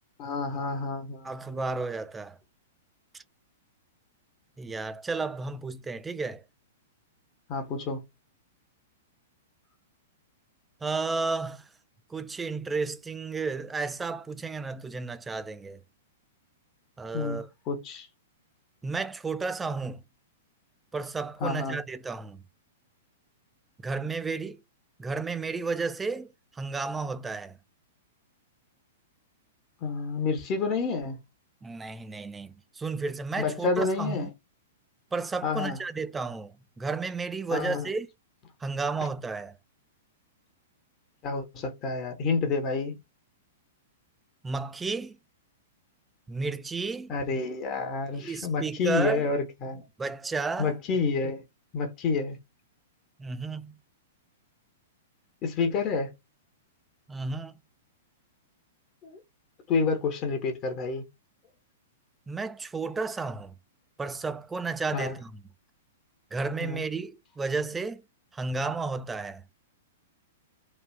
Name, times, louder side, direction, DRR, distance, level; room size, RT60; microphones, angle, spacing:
voice 1, 0.2-1.6 7.5-8.0 17.1-18.1 21.4-21.8 29.8-31.2 33.4-34.3 35.4-35.8 37.5-37.9 41.2-43.0 47.1-49.9 50.6-51.4 51.7-52.4 55.4-56.1 59.0-59.2 59.7-61.0 64.9-65.2 66.6-66.8, left 4 dB, 35° left, 0.8 m, -29 dB
voice 2, 1.2-2.4 3.1-3.2 4.6-6.4 10.8-11.7 12.1-15.8 17.0-17.5 18.8-20.0 20.9-22.4 23.8-24.6 25.0-27.6 31.6-34.3 35.1-38.1 38.6-39.5 44.4-45.2 46.3-47.1 48.2-49.2 50.0-50.7 53.2-53.8 57.1-57.5 62.3-63.5 64.0-65.4 66.3-68.0 68.3-69.4, right 4 dB, 10° right, 0.3 m, -32 dB
3.2 x 2.3 x 2.3 m
figure-of-eight pair, 105°, 0 cm